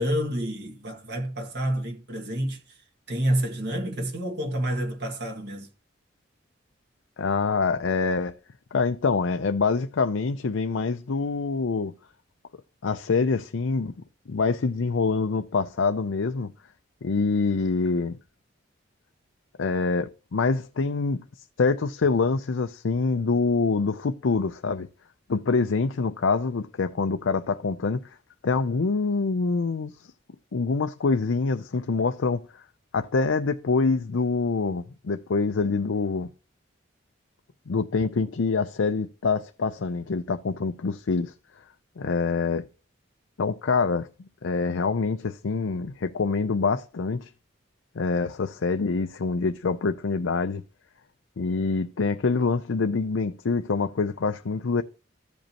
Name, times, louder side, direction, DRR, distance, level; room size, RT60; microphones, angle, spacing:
voice 1, 0.0-2.6 3.1-5.7, right 1 dB, 55° right, 1.9 m, -28 dB
voice 2, 7.2-8.3 8.7-12.0 12.8-13.9 14.3-16.5 17.0-18.2 19.6-21.2 21.6-24.9 25.3-28.2 28.4-30.1 30.5-32.6 32.9-36.3 37.7-41.3 42.0-42.7 43.4-44.1 44.4-47.3 48.0-50.6 51.4-54.8, left 4 dB, 80° left, 0.5 m, -25 dB
15.0 x 5.2 x 2.9 m
head